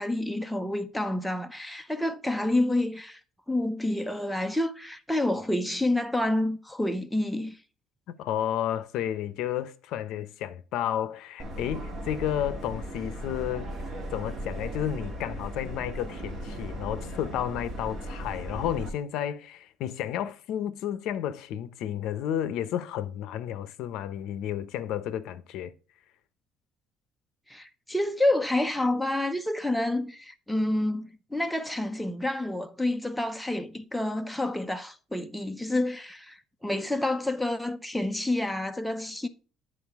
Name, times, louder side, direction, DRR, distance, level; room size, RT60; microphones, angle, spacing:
voice 1, 0.0-3.2 3.5-7.6 27.5-39.3, left 1 dB, ahead, 0.5 m, -28 dB
voice 2, 8.2-13.7 14.1-25.7, left 10 dB, 60° left, 0.6 m, -32 dB
Subway metro underground, 11.4-18.9, right 1 dB, 30° right, 1.7 m, -37 dB
9.9 x 4.7 x 3.5 m
cardioid pair, 170°, 0 cm